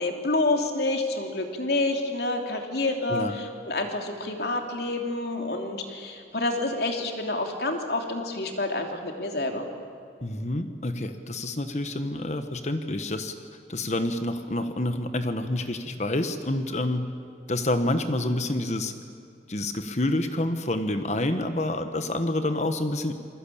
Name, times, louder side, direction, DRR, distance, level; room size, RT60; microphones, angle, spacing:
voice 1, 0.0-9.6, left 2 dB, 65° left, 3 dB, 3.1 m, -28 dB
voice 2, 10.2-13.3 13.7-17.1 17.5-18.9 19.5-23.1, left 1 dB, 40° left, 8 dB, 1.3 m, -28 dB
28.0 x 21.5 x 8.6 m, 2.3 s
head